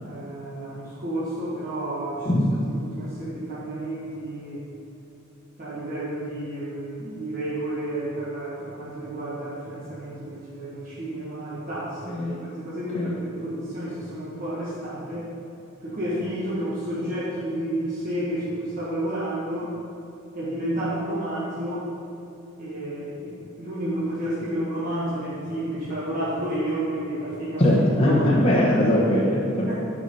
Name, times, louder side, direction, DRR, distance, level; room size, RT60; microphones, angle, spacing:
voice 1, 0.0-2.3 2.7-4.6 5.6-12.3 12.6-15.3 15.8-19.7 20.3-21.9 22.6-27.6 28.0-28.2 29.6-29.7, right 1 dB, 45° right, -9 dB, 1.6 m, -31 dB
voice 2, 27.6-29.7, left 1 dB, 30° left, -7 dB, 1.2 m, -20 dB
11.0 x 5.7 x 5.5 m, 2.9 s
head